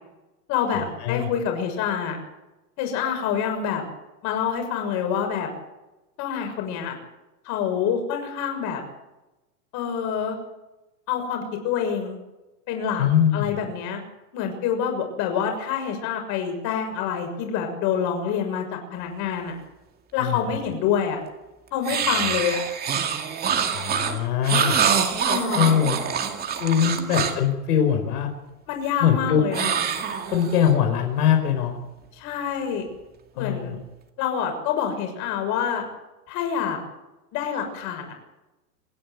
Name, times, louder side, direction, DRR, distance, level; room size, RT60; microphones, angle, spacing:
voice 1, 0.5-2.2 2.8-3.8 4.2-5.5 6.2-7.0 7.4-8.8 9.7-10.4 11.1-12.2 12.7-13.0 13.3-14.0 14.3-19.5 20.1-21.2 21.7-22.6 25.2-25.7 26.9-27.1 28.7-29.8 32.1-32.8 33.3-33.8 34.2-35.8 36.3-36.8 37.3-38.1, left 8 dB, 35° left, 4 dB, 6.6 m, -27 dB
voice 2, 13.0-13.5 20.2-20.4 23.7-24.8 25.5-26.0 26.6-28.3 29.0-29.4 30.2-31.8 33.4-33.8, left 9 dB, 70° left, 4 dB, 5.1 m, -22 dB
sound 1, 21.8-27.5 29.5-30.7, right 7 dB, 20° right, 2.4 m, -25 dB
27.0 x 11.0 x 9.7 m, 1.0 s
supercardioid pair, 150°, 48 cm